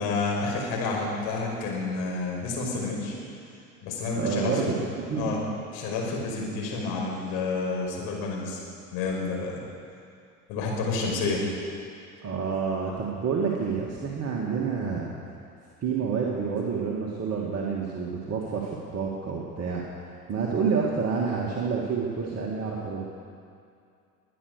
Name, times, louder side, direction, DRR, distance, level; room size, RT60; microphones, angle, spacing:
voice 1, 0.0-3.1 3.8-4.8 5.2-5.4 5.7-8.6 8.9-9.6 10.5-11.5, left 3 dB, 55° left, -2 dB, 5.4 m, -29 dB
voice 2, 4.1-4.8 5.1-5.3 12.2-15.1 15.8-23.1, right 5 dB, 35° right, -3 dB, 2.3 m, -28 dB
22.5 x 9.6 x 6.7 m, 2.4 s
figure-of-eight pair, 75°, 46 cm